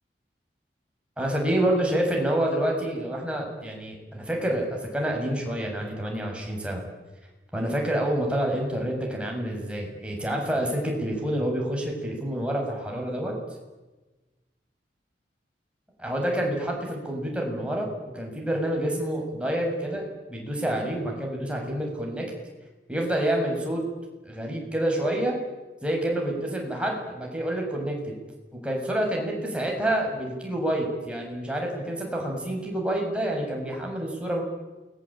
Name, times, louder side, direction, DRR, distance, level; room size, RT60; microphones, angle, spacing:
voice 1, 1.2-6.8 7.5-13.3 16.0-17.9 18.1-20.0 20.3-22.3 22.9-23.8 24.2-25.4 25.8-28.2 28.5-34.4, right 1 dB, 5° right, 0 dB, 7.2 m, -28 dB
29.0 x 21.5 x 8.9 m, 1.2 s
head